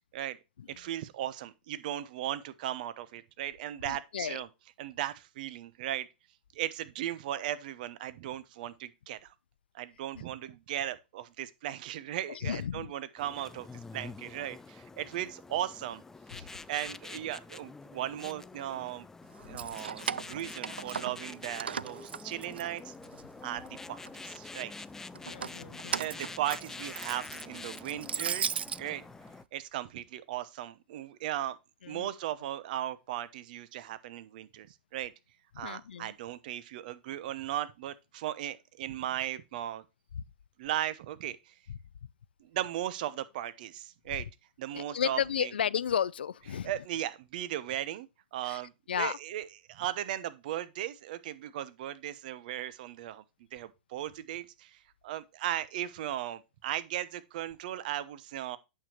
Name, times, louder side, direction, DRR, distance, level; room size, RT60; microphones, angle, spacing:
voice 1, 0.7-4.5 4.8-6.1 6.5-9.3 9.7-13.7 13.9-16.0 16.3-19.1 19.4-22.9 23.4-24.7 25.6-29.0 29.5-31.6 31.9-35.1 35.6-39.8 40.6-41.5 42.4-44.3 44.6-45.5 46.6-48.7 49.0-53.2 53.5-58.6, right 12 dB, 55° right, 0.9 m, -37 dB
voice 2, 3.8-4.4 12.3-12.9 25.3-26.0 31.8-32.1 35.6-36.1 40.2-40.3 44.7-46.7 48.4-48.6 48.9-49.2, left 8 dB, 80° left, 0.4 m, -33 dB
sound 1, 13.2-29.4, left 3 dB, 10° left, 0.4 m, -46 dB
Keys jangling, 19.4-21.3 21.6-23.2 23.6-24.4 25.1-28.8, right 7 dB, 85° right, 0.4 m, -37 dB
8.9 x 6.7 x 2.9 m
hypercardioid pair, 115°, 5 cm